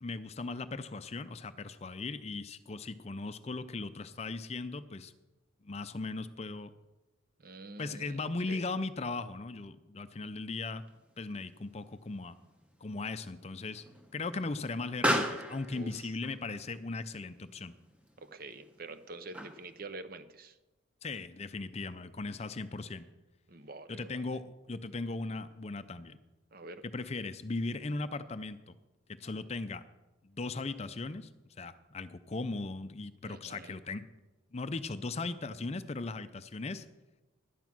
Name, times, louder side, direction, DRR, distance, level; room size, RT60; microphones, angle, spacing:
voice 1, 0.0-5.1 5.6-6.7 7.8-10.8 11.2-12.4 12.8-13.8 14.1-17.7 21.0-23.1 23.9-26.2 26.9-28.8 29.2-29.8 30.2-31.3 31.6-34.1 34.5-36.9, left 3 dB, 30° left, 12 dB, 0.5 m, -38 dB
voice 2, 7.4-8.7 15.7-16.1 18.2-20.6 23.5-24.4 26.5-26.8 33.2-33.7, right 3 dB, 45° right, 11 dB, 0.7 m, -47 dB
Explosion, 10.8-19.8, equal, 5° right, 1.0 m, -39 dB
12.0 x 9.2 x 6.0 m, 1.1 s
head